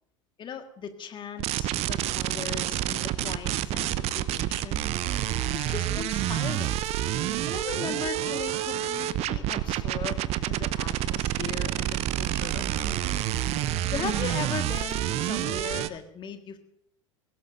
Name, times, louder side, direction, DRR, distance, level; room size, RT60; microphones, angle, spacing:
voice 1, 0.4-4.9 5.5-6.9 7.5-10.2 10.5-13.2 13.9-16.6, left 7 dB, 30° left, 6 dB, 1.8 m, -38 dB
sound 1, 1.4-15.9, right 13 dB, 40° right, 0.7 m, -28 dB
23.0 x 17.5 x 2.7 m, 0.74 s
figure-of-eight pair, 75°, 16 cm